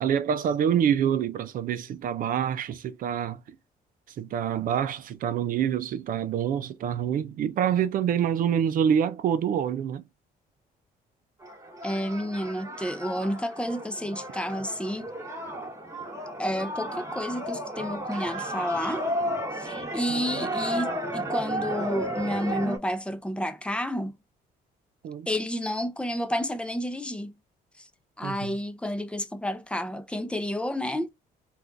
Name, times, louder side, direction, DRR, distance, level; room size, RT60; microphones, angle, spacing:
voice 1, 0.0-3.6 4.1-10.0 20.1-20.5 25.0-25.3 28.2-28.6, right 8 dB, 60° right, 0.4 m, -26 dB
sound 1, 11.4-22.8, right 1 dB, 20° right, 1.1 m, -33 dB
voice 2, 11.8-15.1 16.4-19.0 19.5-24.2 25.3-27.3 27.8-27.9 28.2-31.1, equal, 5° left, 0.5 m, -30 dB
3.6 x 2.4 x 2.5 m
cardioid pair, 105°, 16 cm